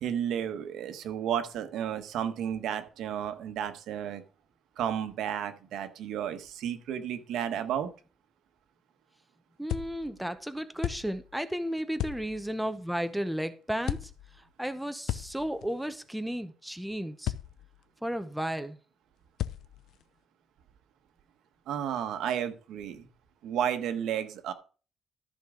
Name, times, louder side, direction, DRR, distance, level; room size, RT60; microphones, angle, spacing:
voice 1, 0.0-4.2 4.8-7.9 21.7-23.1 23.4-24.5, right 9 dB, 85° right, 9 dB, 1.2 m, -32 dB
voice 2, 9.6-14.1 14.6-17.3 18.0-18.8, equal, 5° right, 9 dB, 0.8 m, -33 dB
sound 1, 9.7-10.3 10.8-11.4 12.0-12.5 13.8-14.4 15.1-15.9 17.2-17.8 19.4-20.0, left 13 dB, 80° left, 0.6 m, -36 dB
13.5 x 6.1 x 3.8 m, 0.38 s
cardioid pair, 135°, 0 cm